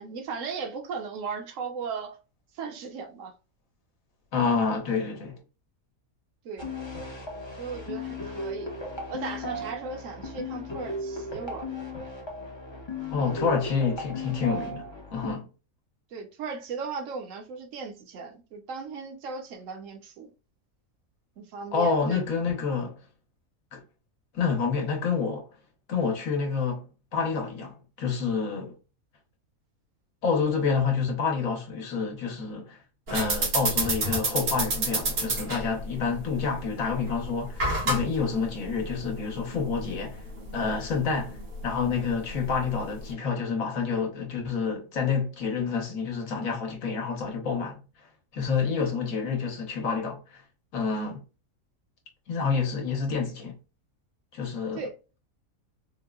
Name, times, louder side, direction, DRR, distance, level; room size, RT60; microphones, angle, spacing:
voice 1, 0.0-2.2 2.5-3.3 6.4-6.7 7.6-8.7 9.1-11.7 16.1-20.3 21.4-22.2 54.7-54.9, right 5 dB, 65° right, 1.2 m, -37 dB
voice 2, 4.3-5.4 13.1-15.5 21.7-23.0 23.7-23.8 24.3-25.5 25.9-26.9 27.1-28.7 30.2-32.8 33.1-40.2 40.5-41.4 41.6-47.8 48.3-50.4 50.7-51.2 52.3-53.6 54.3-54.8, left 5 dB, 70° left, 1.5 m, -28 dB
sound 1, 6.6-15.3, left 2 dB, 25° left, 0.6 m, -36 dB
sound 2, 33.1-43.1, right 2 dB, 85° right, 1.7 m, -31 dB
4.6 x 2.1 x 2.3 m
omnidirectional pair, 1.5 m